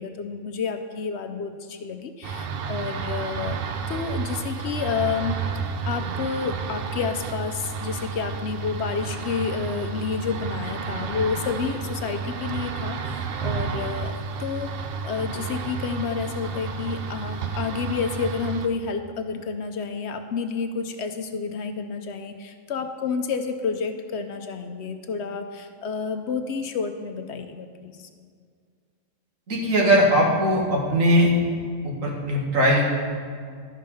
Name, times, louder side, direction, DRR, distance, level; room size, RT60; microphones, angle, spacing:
voice 1, 0.0-3.6 3.9-5.4 5.9-28.1, left 5 dB, 65° left, 7 dB, 0.8 m, -30 dB
sound 1, 2.2-18.7, right 5 dB, 60° right, 0.7 m, -31 dB
voice 2, 29.5-31.3 31.8-32.8, equal, 85° right, -3 dB, 2.2 m, -20 dB
12.0 x 5.2 x 5.4 m, 2.1 s
omnidirectional pair, 1.3 m